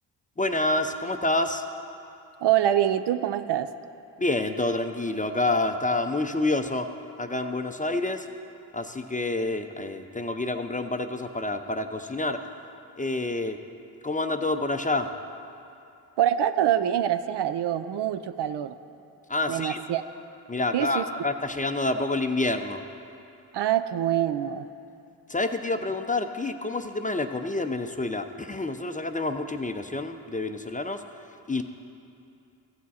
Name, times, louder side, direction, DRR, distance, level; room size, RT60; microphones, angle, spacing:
voice 1, 0.4-1.6 4.2-6.9 7.2-8.3 8.7-12.4 13.0-13.6 14.0-15.1 19.3-19.8 20.5-22.8 25.3-31.0 31.5-31.6, left 2 dB, 15° left, 7 dB, 0.5 m, -28 dB
voice 2, 2.4-3.7 16.2-18.7 19.5-20.0 20.7-21.0 23.5-24.7, right 11 dB, 60° right, 11 dB, 0.5 m, -25 dB
14.5 x 6.2 x 4.1 m, 2.7 s
supercardioid pair, 40°, 47 cm